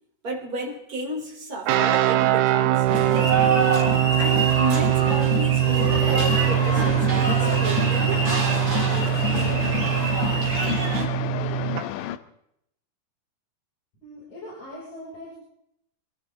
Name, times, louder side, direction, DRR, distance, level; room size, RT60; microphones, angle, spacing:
voice 1, 0.2-3.3 4.2-8.4, right 2 dB, 25° right, 0 dB, 3.5 m, -32 dB
sound 1, 1.7-11.8, right 13 dB, 90° right, 2.9 m, -22 dB
sound 2, 2.9-11.0, right 2 dB, 40° right, 5.3 m, -26 dB
sound 3, 5.9-12.2, left 12 dB, 75° left, 2.3 m, -31 dB
voice 2, 14.0-15.4, left 1 dB, 45° left, -6 dB, 7.4 m, -40 dB
27.0 x 13.0 x 3.7 m, 0.76 s
omnidirectional pair, 4.7 m